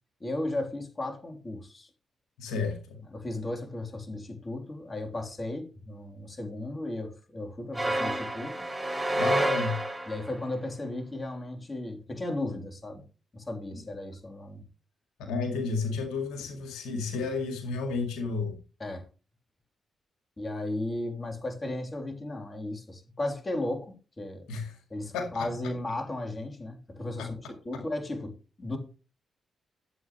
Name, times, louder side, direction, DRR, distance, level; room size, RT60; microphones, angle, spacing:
voice 1, 0.2-1.9 3.1-8.7 10.1-13.0 13.3-14.6 18.8-19.1 20.4-24.5 24.9-28.3 28.6-28.8, left 1 dB, 35° left, 3.3 m, -35 dB
voice 2, 2.4-3.0 9.1-9.8 13.7-13.8 15.3-18.6 24.5-24.8 25.1-25.5 27.2-27.3, left 4 dB, 90° left, 2.0 m, -32 dB
sound 1, 7.7-10.4, right 1 dB, 15° right, 4.5 m, -29 dB
12.5 x 8.1 x 3.1 m
supercardioid pair, 50°, 0 cm